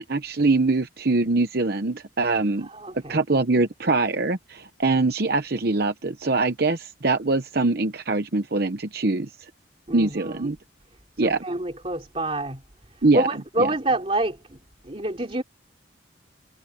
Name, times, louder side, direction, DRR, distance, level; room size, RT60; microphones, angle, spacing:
voice 1, 0.0-2.7 3.1-9.5 9.9-10.6 11.2-11.4 13.0-13.3, right 3 dB, 55° right, 0.9 m, -23 dB
voice 2, 2.6-3.2 9.9-10.5 11.2-12.6 13.1-14.6 14.8-15.4, right 1 dB, 30° right, 3.3 m, -27 dB
head